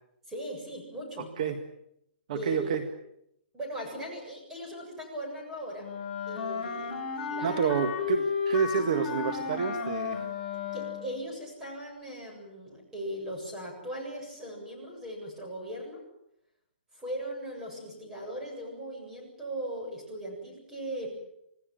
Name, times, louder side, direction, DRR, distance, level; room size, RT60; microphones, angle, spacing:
voice 1, 0.3-1.3 2.3-2.7 3.5-5.9 6.3-7.7 8.1-8.3 10.7-16.0 16.9-21.1, right 1 dB, 10° right, 0 dB, 7.5 m, -39 dB
voice 2, 2.3-2.8 7.4-10.3, right 6 dB, 40° right, 8 dB, 1.7 m, -29 dB
Wind instrument woodwind instrument, 5.8-11.3, left 5 dB, 25° left, 4.7 m, -33 dB
27.5 x 18.5 x 9.2 m, 0.80 s
hypercardioid pair, 165°, 6 cm